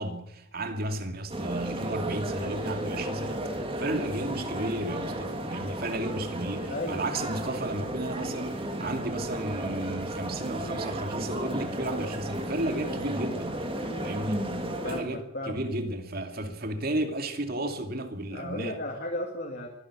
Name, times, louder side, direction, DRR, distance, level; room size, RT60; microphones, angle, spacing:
voice 1, 0.0-13.5 14.0-14.5 14.8-18.8, right 1 dB, 50° right, 2.5 m, -33 dB
sound 1, 1.3-15.0, right 1 dB, 25° right, 2.9 m, -33 dB
voice 2, 6.7-7.1 13.8-14.1 14.8-15.6 18.3-19.7, left 1 dB, 50° left, 2.7 m, -35 dB
23.5 x 11.5 x 10.0 m
head